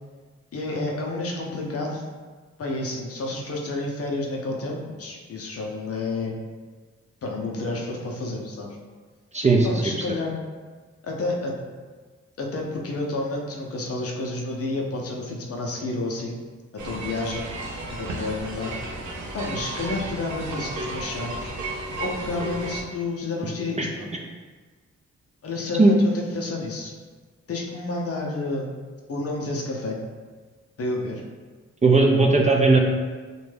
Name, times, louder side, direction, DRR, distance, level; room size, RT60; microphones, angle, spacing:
voice 1, 0.5-2.0 2.6-6.3 7.2-8.7 9.6-10.3 11.0-11.6 12.4-16.4 16.8-17.5 17.9-18.7 19.3-21.5 22.0-24.1 25.4-26.9 27.5-28.7 29.1-30.0 30.8-31.2, left 2 dB, 55° left, -1 dB, 0.6 m, -30 dB
voice 2, 9.3-9.7 23.8-23.9 25.8-26.0 31.8-32.8, right 3 dB, 25° right, 0 dB, 0.4 m, -17 dB
sound 1, 16.8-22.8, right 2 dB, 80° right, 0.5 m, -33 dB
2.6 x 2.2 x 3.2 m, 1.4 s
cardioid pair, 55°, 29 cm